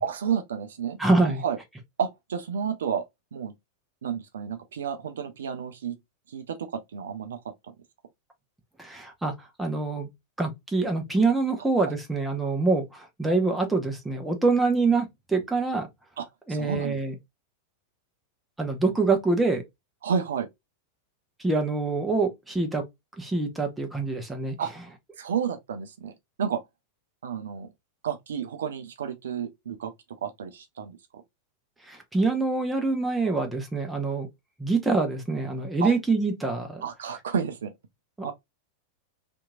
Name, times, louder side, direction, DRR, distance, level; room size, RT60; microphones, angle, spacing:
voice 1, 0.0-1.6 2.0-3.0 3.3-3.5 4.0-6.0 6.3-7.4 16.2-17.0 20.0-20.5 24.6-24.7 25.2-26.1 26.4-26.6 27.2-27.7 28.0-29.9 30.2-31.2 35.8-36.0 36.8-37.7 38.2-38.3, right 7 dB, 65° right, 0.4 m, -31 dB
voice 2, 1.0-1.4 8.8-9.3 9.6-10.1 10.4-15.9 16.5-17.1 18.6-19.6 21.4-22.8 23.2-24.5 31.9-34.3 34.6-36.8 38.2-38.3, right 3 dB, 5° right, 0.8 m, -25 dB
2.8 x 2.6 x 2.3 m
figure-of-eight pair, 90°, 0 cm